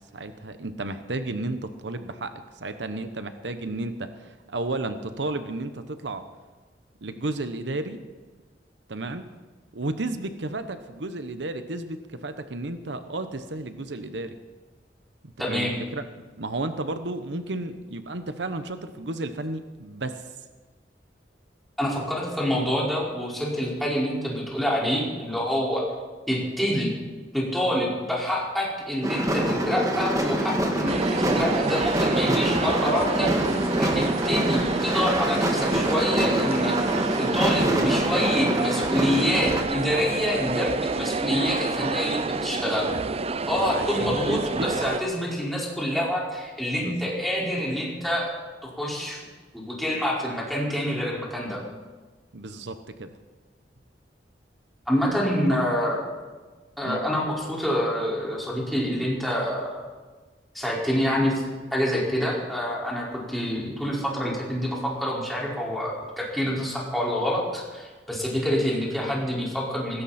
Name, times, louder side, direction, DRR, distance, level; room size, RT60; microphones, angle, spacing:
voice 1, 0.0-6.2 7.0-8.0 8.9-9.3 9.7-14.4 15.5-16.0 16.4-20.3 43.7-44.7 46.8-47.1 52.3-53.1 56.8-57.0, right 2 dB, 80° right, 9 dB, 1.0 m, -33 dB
voice 2, 15.4-15.7 21.8-25.9 26.3-26.9 27.3-33.3 33.8-36.7 37.2-42.9 43.5-48.3 48.8-49.2 49.5-51.6 54.9-56.0 56.8-59.8 60.5-61.3 61.7-70.0, equal, ahead, -5 dB, 4.9 m, -26 dB
sound 1, 29.0-39.6, right 1 dB, 20° right, 2.0 m, -26 dB
sound 2, 30.9-45.0, right 3 dB, 35° right, 0.6 m, -29 dB
19.0 x 16.5 x 4.3 m, 1.4 s
head